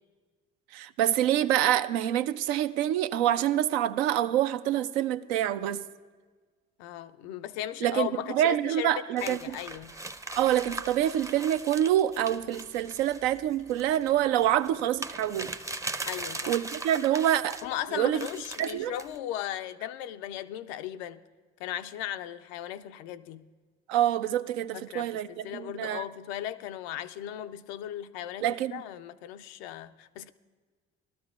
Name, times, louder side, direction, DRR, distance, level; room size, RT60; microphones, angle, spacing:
voice 1, 0.7-5.8 7.8-9.5 10.4-15.5 16.5-17.6 17.9-18.3 18.6-18.9 23.9-26.0 28.4-28.8, right 11 dB, 80° right, 0.5 m, -26 dB
voice 2, 6.8-8.9 9.2-9.9 16.1-16.5 17.6-21.2 21.6-23.5 24.7-30.3, left 12 dB, 80° left, 0.5 m, -37 dB
sound 1, 9.2-17.7 18.1-19.2, right 2 dB, 10° right, 0.5 m, -40 dB
18.0 x 12.5 x 2.4 m
hypercardioid pair, 50°, 32 cm